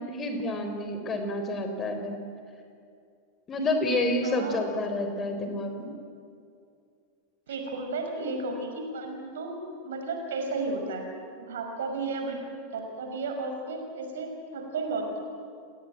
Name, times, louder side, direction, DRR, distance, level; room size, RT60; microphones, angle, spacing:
voice 1, 0.0-2.2 3.5-5.9, left 1 dB, 25° left, 6 dB, 3.9 m, -29 dB
voice 2, 4.2-4.8 7.5-11.1 11.4-12.4 12.7-15.2, right 3 dB, 60° right, 4 dB, 5.7 m, -33 dB
29.0 x 19.0 x 9.1 m, 2.4 s
figure-of-eight pair, 90°, 0 cm